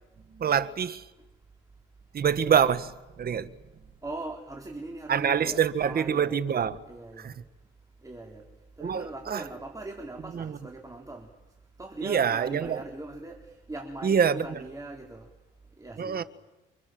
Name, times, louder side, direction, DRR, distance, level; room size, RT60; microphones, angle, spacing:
voice 1, 0.3-1.1 2.1-3.5 5.1-6.8 7.2-7.3 8.8-9.4 10.3-10.6 12.0-12.8 14.0-14.6 16.0-16.2, right 7 dB, 50° right, 1.6 m, -26 dB
voice 2, 4.0-6.3 6.9-7.5 7.8-15.3 15.6-16.2, right 2 dB, 15° right, 4.1 m, -41 dB
29.0 x 26.0 x 7.8 m
cardioid pair, 90°, 20 cm